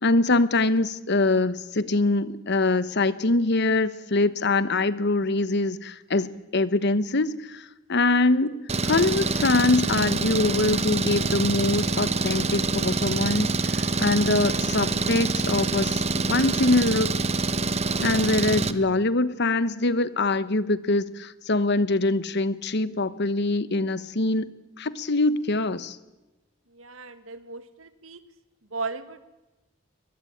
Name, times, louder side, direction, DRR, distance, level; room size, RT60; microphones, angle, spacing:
voice 1, 0.0-8.6 8.8-17.1 18.0-24.5 24.8-26.0, left 2 dB, 60° left, 15 dB, 1.2 m, -24 dB
Engine, 8.7-18.7, right 3 dB, 35° right, 1.0 m, -26 dB
voice 2, 26.7-28.2 28.7-29.2, right 4 dB, 90° right, 12 dB, 1.8 m, -36 dB
23.0 x 20.0 x 8.8 m, 1.1 s
head